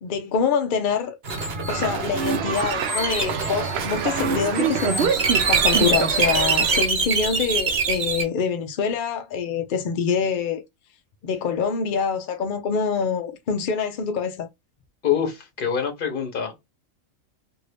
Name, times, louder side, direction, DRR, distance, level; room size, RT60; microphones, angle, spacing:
voice 1, 0.0-1.1 1.7-10.6 11.2-14.5, left 6 dB, 75° left, 0.4 m, -25 dB
sound 1, 1.2-8.2, right 4 dB, 50° right, 1.1 m, -24 dB
sound 2, 1.7-6.9, right 7 dB, 65° right, 0.7 m, -27 dB
voice 2, 15.0-16.7, left 8 dB, 45° left, 0.9 m, -25 dB
2.7 x 2.6 x 3.2 m
omnidirectional pair, 1.4 m